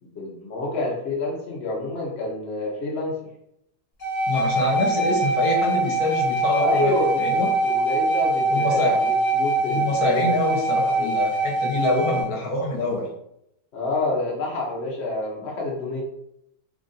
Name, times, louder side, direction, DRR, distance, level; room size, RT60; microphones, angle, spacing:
voice 1, 0.0-3.1 6.6-10.3 10.8-11.1 13.7-16.0, left 2 dB, 50° left, -3 dB, 1.0 m, -28 dB
sound 1, 4.0-12.3, right 2 dB, 30° left, 1.3 m, -23 dB
voice 2, 4.3-7.5 8.5-8.9 9.7-13.0, left 2 dB, 70° left, -2 dB, 1.4 m, -25 dB
3.5 x 2.5 x 3.9 m, 0.78 s
omnidirectional pair, 1.7 m